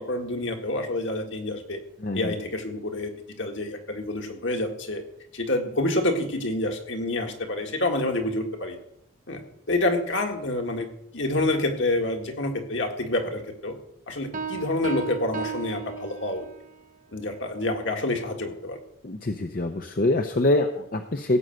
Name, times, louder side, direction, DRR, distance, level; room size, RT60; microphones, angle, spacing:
voice 1, 0.0-1.8 2.1-3.1 3.4-5.0 5.3-8.8 9.3-9.4 9.7-10.9 11.1-13.8 14.1-16.4 17.1-18.8, left 2 dB, 60° left, 3 dB, 1.8 m, -27 dB
voice 2, 2.0-2.3 19.0-21.4, left 2 dB, 45° left, 6 dB, 0.7 m, -25 dB
Piano, 14.3-16.7, right 6 dB, 40° right, 0.7 m, -35 dB
16.5 x 5.6 x 7.8 m, 0.77 s
head